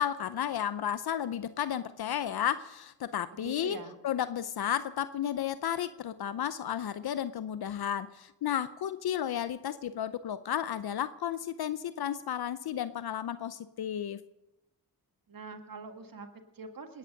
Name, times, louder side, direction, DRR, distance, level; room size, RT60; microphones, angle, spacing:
voice 1, 0.0-3.8 4.0-14.3, left 10 dB, 75° left, 14 dB, 0.7 m, -33 dB
voice 2, 3.4-4.0 15.3-17.0, right 3 dB, 60° right, 7 dB, 1.8 m, -44 dB
19.5 x 9.8 x 6.5 m, 0.94 s
cardioid pair, 45°, 38 cm